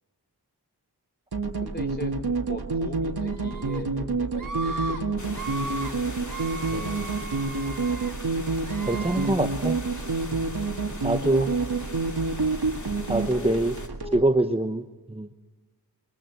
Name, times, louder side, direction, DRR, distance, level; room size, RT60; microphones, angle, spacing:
sound 1, 1.3-14.2, right 3 dB, 65° right, 2.1 m, -28 dB
voice 1, 1.6-2.1 2.5-5.8 8.7-8.9 9.2-10.1 10.9-12.2, left 1 dB, 25° left, 5 dB, 4.3 m, -42 dB
Screaming, 3.2-3.8 4.3-5.0 5.3-5.9 6.3-8.1 8.6-9.3, right 3 dB, 50° right, 1.8 m, -37 dB
sound 2, 5.2-13.9, left 2 dB, 45° left, 2.8 m, -41 dB
voice 2, 6.7-7.0 8.9-9.8 11.0-11.5 13.1-13.8 14.1-14.8 15.1-15.3, right 2 dB, 15° right, 7 dB, 0.9 m, -24 dB
28.0 x 23.0 x 7.9 m, 1.3 s
wide cardioid pair, 70°, 40 cm